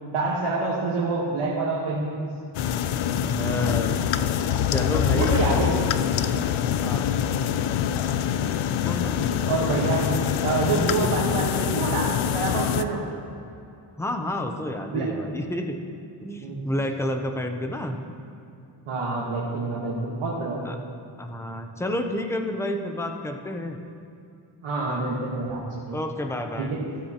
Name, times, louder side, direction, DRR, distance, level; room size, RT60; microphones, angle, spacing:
voice 1, 0.1-2.2 5.1-5.7 9.4-10.1 10.4-13.0 14.9-15.2 16.4-16.6 18.9-20.7 24.6-26.0 26.6-26.8, right 3 dB, 85° right, -5 dB, 1.5 m, -27 dB
sound 1, 2.5-12.8, left 9 dB, 85° left, 0.6 m, -25 dB
voice 2, 3.2-4.0 4.7-5.3 6.8-7.1 8.8-9.2 14.0-15.8 16.2-18.0 20.6-20.7 21.2-23.8 24.9-25.2 25.9-26.7, left 1 dB, 5° left, 4 dB, 0.6 m, -30 dB
14.0 x 13.0 x 3.0 m, 2.6 s
wide cardioid pair, 170°, 48 cm